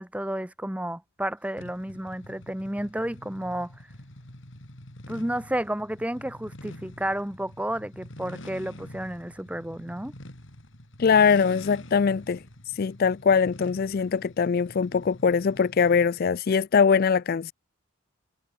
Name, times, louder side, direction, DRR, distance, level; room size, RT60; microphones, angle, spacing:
voice 1, 0.0-3.7 5.1-10.1, right 1 dB, 5° right, 1.0 m, -31 dB
sound 1, 1.6-16.3, left 1 dB, 60° left, 3.8 m, -46 dB
voice 2, 11.0-12.4 12.8-17.5, left 6 dB, 45° left, 0.3 m, -22 dB
head